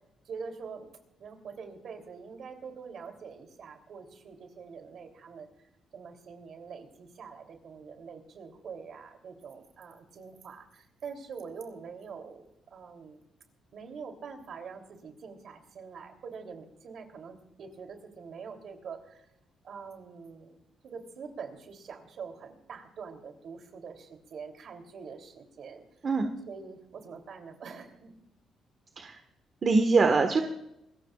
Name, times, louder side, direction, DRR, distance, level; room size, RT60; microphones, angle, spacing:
voice 1, 0.2-0.9 1.2-5.5 5.9-13.2 13.7-19.3 19.6-20.6 20.8-25.8 26.5-28.1, right 5 dB, 60° right, 5 dB, 3.2 m, -44 dB
voice 2, 29.6-30.4, right 4 dB, 45° right, 5 dB, 1.5 m, -23 dB
26.5 x 15.0 x 2.5 m, 0.83 s
cardioid pair, 90°, 0 cm